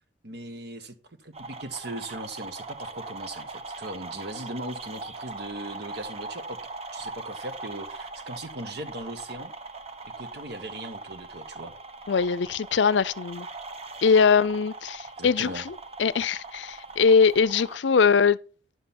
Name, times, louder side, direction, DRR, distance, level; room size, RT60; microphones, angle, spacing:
voice 1, 0.2-6.6 6.9-9.5 10.0-11.7 15.2-15.7, right 1 dB, 65° right, 1.5 m, -39 dB
sound 1, 1.3-17.8, right 3 dB, 35° right, 1.0 m, -40 dB
voice 2, 12.1-13.5 14.0-15.7 16.0-18.4, left 5 dB, 75° left, 0.5 m, -21 dB
11.0 x 7.6 x 4.3 m
head